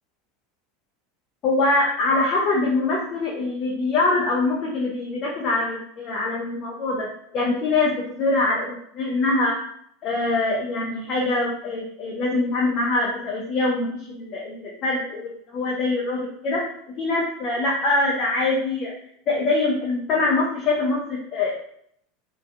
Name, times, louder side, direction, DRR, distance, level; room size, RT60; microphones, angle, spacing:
voice 1, 1.4-7.1 7.3-9.6 10.0-16.6 17.0-18.9 19.3-21.5, left 2 dB, 45° left, -3 dB, 0.5 m, -23 dB
2.5 x 2.3 x 2.3 m, 0.68 s
hypercardioid pair, 80°, 0 cm